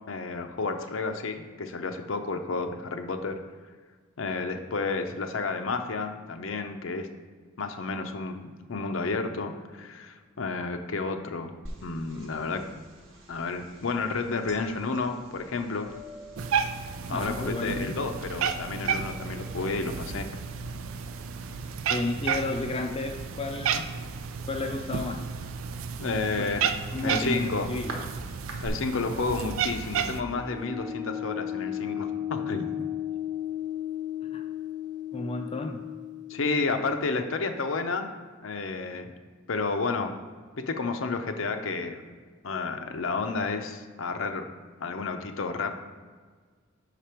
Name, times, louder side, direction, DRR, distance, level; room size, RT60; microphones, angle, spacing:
voice 1, 0.1-3.4 4.2-7.1 7.6-11.5 11.8-12.7 13.3-15.9 17.1-20.3 26.0-26.7 27.0-27.7 28.6-32.7 36.3-38.1 38.4-39.1 39.5-40.1 40.6-42.0 42.4-44.5 44.8-45.8, left 4 dB, 70° left, 6 dB, 0.6 m, -31 dB
sound 1, 11.7-28.7, equal, 70° right, 1.1 m, -48 dB
Cat, 16.4-30.2, right 6 dB, 85° right, 0.4 m, -32 dB
voice 2, 17.1-18.0 21.9-23.9 24.4-25.2 26.4-26.5 26.9-28.0 34.3-34.4 35.1-35.8, left 2 dB, 30° left, 3 dB, 0.4 m, -32 dB
sound 2, 30.2-37.6, left 11 dB, 20° right, 0.6 m, -35 dB
5.9 x 5.0 x 4.4 m, 1.5 s
head